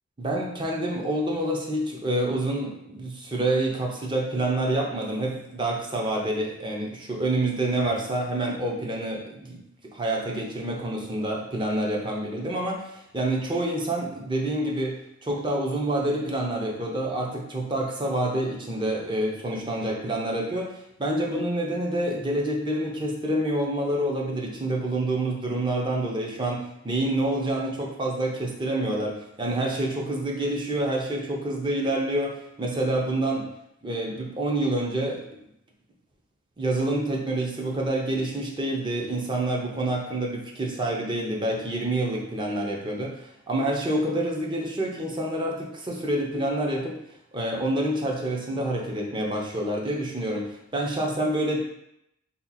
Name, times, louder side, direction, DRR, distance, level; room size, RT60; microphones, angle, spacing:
voice 1, 0.2-9.6 9.9-15.0 15.2-33.5 33.8-35.2 36.6-47.0 47.3-51.6, right 1 dB, 25° right, -1 dB, 0.6 m, -27 dB
2.8 x 2.4 x 3.9 m, 0.79 s
head